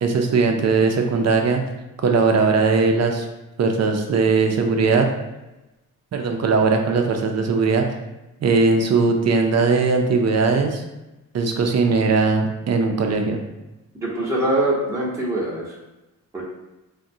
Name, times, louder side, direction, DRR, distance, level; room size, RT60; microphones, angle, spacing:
voice 1, 0.0-1.6 2.0-3.3 3.6-5.1 6.1-7.9 8.4-10.8 11.3-13.4, right 4 dB, 50° right, 3 dB, 0.6 m, -19 dB
voice 2, 14.0-15.8 16.3-16.4, right 1 dB, 10° right, -6 dB, 0.9 m, -23 dB
3.5 x 2.2 x 2.7 m, 1.0 s
cardioid pair, 65°, 34 cm